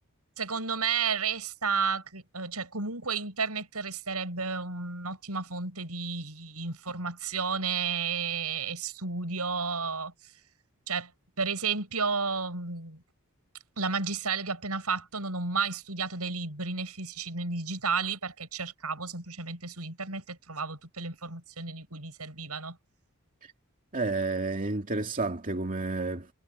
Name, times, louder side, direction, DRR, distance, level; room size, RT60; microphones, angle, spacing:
voice 1, 0.4-10.1 10.9-11.1 11.4-13.0 13.8-22.8, right 5 dB, 85° right, 7.4 m, -32 dB
voice 2, 23.9-26.3, right 3 dB, 40° right, 2.4 m, -30 dB
head